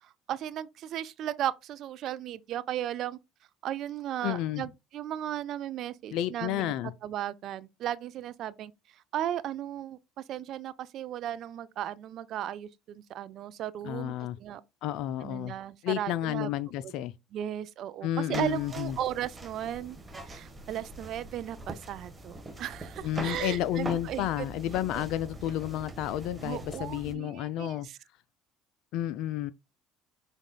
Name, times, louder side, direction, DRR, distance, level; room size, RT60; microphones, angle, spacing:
voice 1, 0.0-3.2 3.6-6.7 7.0-8.7 9.1-14.6 15.2-16.5 16.8-16.9 17.3-20.0 20.2-25.0 26.4-28.0, right 11 dB, 60° right, 0.4 m, -36 dB
voice 2, 4.2-4.7 6.1-6.9 13.8-14.4 14.8-15.5 15.8-17.1 18.0-19.0 23.0-27.9 28.9-29.5, left 12 dB, 65° left, 0.3 m, -31 dB
sound 1, 18.3-27.1, right 1 dB, 20° right, 1.2 m, -43 dB
5.2 x 4.0 x 2.2 m
hypercardioid pair, 70°, 0 cm